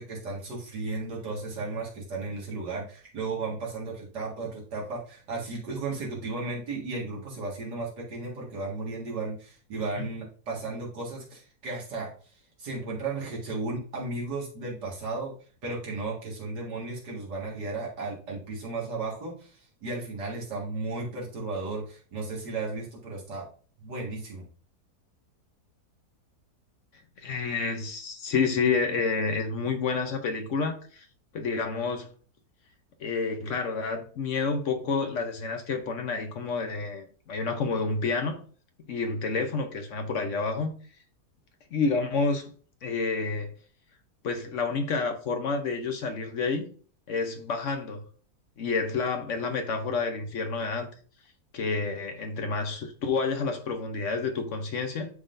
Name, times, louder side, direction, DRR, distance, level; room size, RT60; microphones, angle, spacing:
voice 1, 0.0-12.1 12.6-15.3 15.6-23.5 23.8-24.4, right 3 dB, 90° right, 2.5 m, -34 dB
voice 2, 27.2-31.0 31.3-32.1 33.0-38.4 38.9-40.7 41.7-42.5 42.8-43.5 44.2-46.7 47.1-48.0 48.6-50.9 51.5-55.1, left 4 dB, 55° left, 1.0 m, -29 dB
11.0 x 3.8 x 2.6 m
omnidirectional pair, 1.7 m